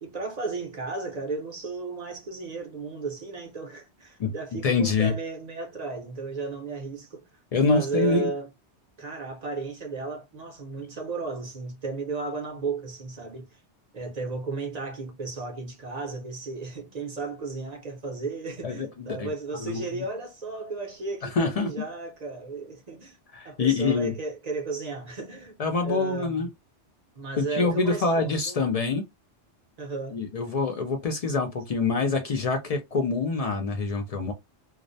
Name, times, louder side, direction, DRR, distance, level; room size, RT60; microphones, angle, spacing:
voice 1, 0.0-7.3 7.6-8.5 9.0-13.6 13.9-23.2 23.4-25.6 25.8-26.5 27.2-28.6 29.8-30.2, right 3 dB, 45° right, 0.6 m, -34 dB
voice 2, 4.6-5.1 7.5-8.3 18.6-19.3 19.6-19.8 21.2-21.7 23.3-24.1 25.6-26.5 27.4-29.0 30.1-34.3, left 4 dB, 65° left, 0.3 m, -25 dB
2.4 x 2.0 x 2.5 m
omnidirectional pair, 1.2 m